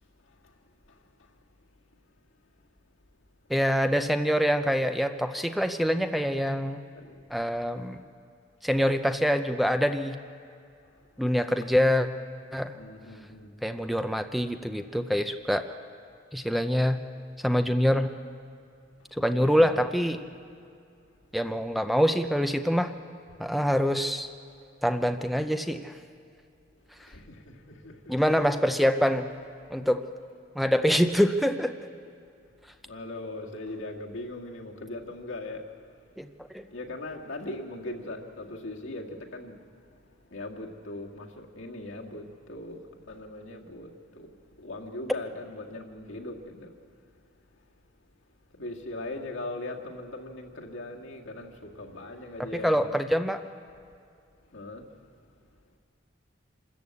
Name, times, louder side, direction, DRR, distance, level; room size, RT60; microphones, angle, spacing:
voice 1, 0.2-0.6 0.9-1.4 4.6-4.7 7.0-7.3 10.8-11.3 11.6-11.7 12.7-13.6 19.0-19.9 27.0-28.3 32.8-35.9 36.7-47.0 48.5-53.0 54.5-55.2, left 2 dB, 80° left, 2.1 m, -40 dB
voice 2, 3.5-6.8 7.3-8.0 8.6-10.2 11.2-12.1 12.5-12.7 13.6-15.7 16.3-17.0 17.4-18.1 19.1-20.2 21.3-22.9 23.4-24.3 24.8-25.9 28.1-29.3 29.7-30.0 30.6-31.8 36.2-36.6 52.6-53.4, equal, ahead, 0.5 m, -25 dB
26.0 x 13.5 x 8.3 m
head